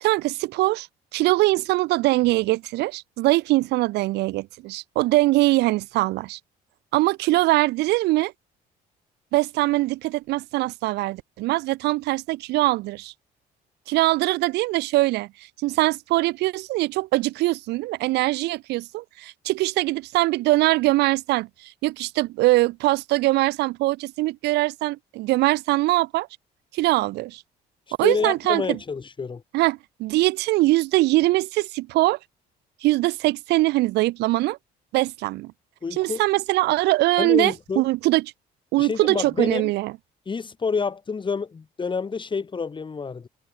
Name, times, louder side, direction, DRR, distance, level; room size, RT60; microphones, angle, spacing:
voice 1, 0.0-6.4 6.9-8.3 9.3-13.1 13.9-26.3 26.7-27.4 28.0-28.8 29.5-32.2 32.8-34.6 34.9-35.5 35.9-38.2 38.7-39.9, right 19 dB, 85° right, 1.1 m, -22 dB
voice 2, 28.0-29.4 35.8-36.2 37.2-37.8 38.8-39.7 40.3-43.3, left 5 dB, 30° left, 5.7 m, -28 dB
cardioid pair, 110°, 17 cm